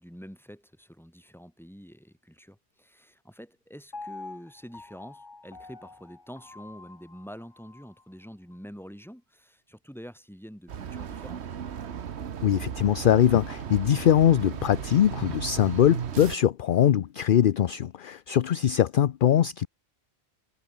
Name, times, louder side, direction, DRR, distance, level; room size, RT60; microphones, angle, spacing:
voice 1, 0.0-11.5, equal, ahead, 7.3 m, -46 dB
Piano, 3.9-8.0 8.5-8.6, left 3 dB, 25° left, 1.1 m, -46 dB
sound 1, 10.7-16.4, right 8 dB, 90° right, 1.3 m, -36 dB
voice 2, 12.4-19.7, left 10 dB, 60° left, 0.7 m, -22 dB
omnidirectional pair, 1.1 m